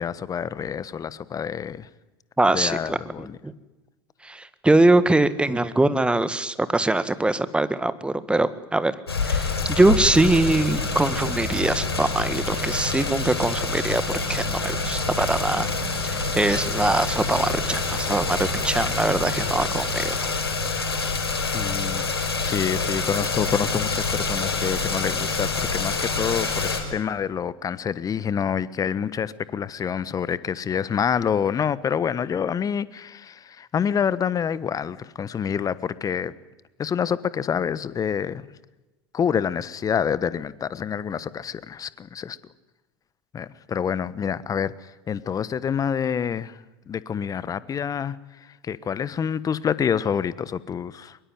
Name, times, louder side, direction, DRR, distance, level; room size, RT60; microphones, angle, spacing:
voice 1, 0.0-1.9 2.5-3.4 21.5-22.0 22.4-36.3 36.8-38.5 39.1-42.4 43.3-46.6 46.9-48.2 48.4-51.2, left 7 dB, 30° left, 17 dB, 1.3 m, -27 dB
voice 2, 2.4-3.5 4.2-8.9 9.2-15.7 16.0-20.3, right 2 dB, 10° right, 13 dB, 1.7 m, -22 dB
sound 1, 9.1-26.8, left 4 dB, 85° left, 5.1 m, -27 dB
sound 2, 10.2-20.0, right 12 dB, 60° right, 1.9 m, -37 dB
23.5 x 22.0 x 9.4 m, 1.1 s
figure-of-eight pair, 80°, 13 cm